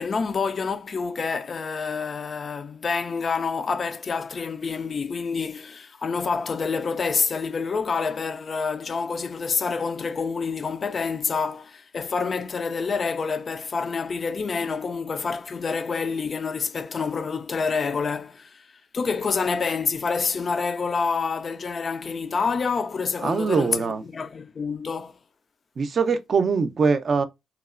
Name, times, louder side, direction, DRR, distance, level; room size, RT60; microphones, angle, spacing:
voice 1, 0.0-18.7 18.9-25.2, left 5 dB, 45° left, 0.3 m, -27 dB
voice 2, 23.2-24.0 25.8-27.2, right 5 dB, 50° right, 0.4 m, -22 dB
2.9 x 2.0 x 2.4 m
cardioid pair, 75°, 0 cm